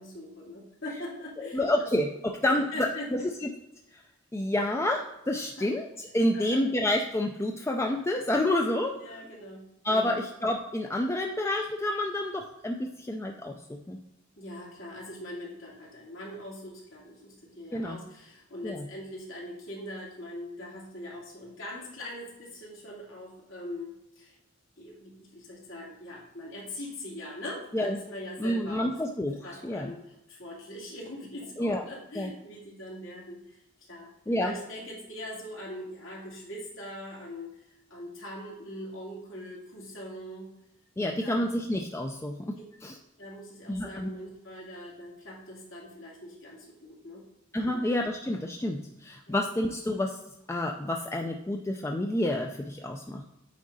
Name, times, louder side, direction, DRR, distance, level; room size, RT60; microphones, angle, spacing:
voice 1, 0.0-1.6 2.4-3.1 5.6-5.7 6.3-6.7 8.9-9.6 9.9-10.2 14.4-24.3 24.8-28.9 29.4-33.6 33.9-34.1 34.4-37.5 37.9-40.5 41.0-41.3 43.2-47.2 47.7-47.8 49.3-49.4, left 1 dB, 75° left, -4 dB, 2.5 m, -42 dB
voice 2, 1.4-3.5 3.9-4.0 4.3-5.9 6.1-8.9 9.8-14.0 17.7-18.0 18.6-18.9 27.7-28.0 28.4-29.4 29.6-29.9 31.6-31.8 32.2-32.3 34.3-34.5 41.0-43.0 43.7-44.1 47.5-50.2 50.5-53.2, left 1 dB, 15° left, 2 dB, 0.4 m, -29 dB
8.5 x 3.7 x 4.0 m, 0.89 s
head